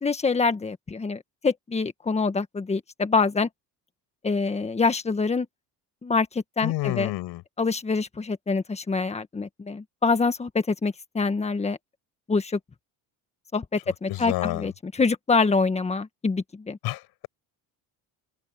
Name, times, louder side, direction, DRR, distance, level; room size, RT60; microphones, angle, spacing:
voice 1, 0.0-3.5 4.2-5.5 6.0-7.1 7.6-11.8 12.3-12.6 13.5-16.8, left 4 dB, 15° left, 1.5 m, -25 dB
voice 2, 6.6-7.4 14.1-14.7 16.8-17.3, left 18 dB, 80° left, 5.8 m, -29 dB
open air
cardioid pair, 145°, 38 cm